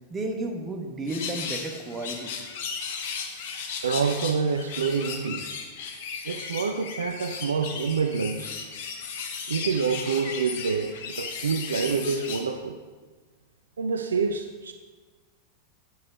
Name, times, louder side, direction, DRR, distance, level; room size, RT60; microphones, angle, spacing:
voice 1, 0.1-2.3, right 2 dB, 20° right, 3 dB, 1.1 m, -32 dB
sound 1, 1.1-12.5, left 6 dB, 55° left, 0.9 m, -35 dB
voice 2, 3.8-5.4 6.2-8.5 9.5-12.8 13.8-14.7, right 5 dB, 70° right, 7 dB, 0.4 m, -27 dB
8.3 x 5.4 x 4.6 m, 1.4 s
figure-of-eight pair, 90°, 0 cm